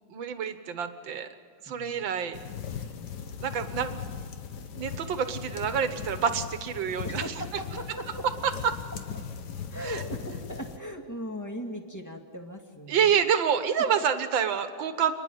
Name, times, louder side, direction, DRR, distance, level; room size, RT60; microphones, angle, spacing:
voice 1, 0.1-1.3 1.6-2.4 3.4-3.9 4.7-7.3 8.4-8.8 9.8-10.0 12.9-15.1, right 7 dB, 70° right, 9 dB, 1.9 m, -27 dB
voice 2, 1.7-2.1 7.0-8.3 9.7-13.0 13.9-14.0, equal, 10° left, 3 dB, 1.8 m, -38 dB
sound 1, 2.3-10.8, left 7 dB, 60° left, 1.6 m, -38 dB
29.0 x 10.5 x 9.2 m, 2.1 s
omnidirectional pair, 2.2 m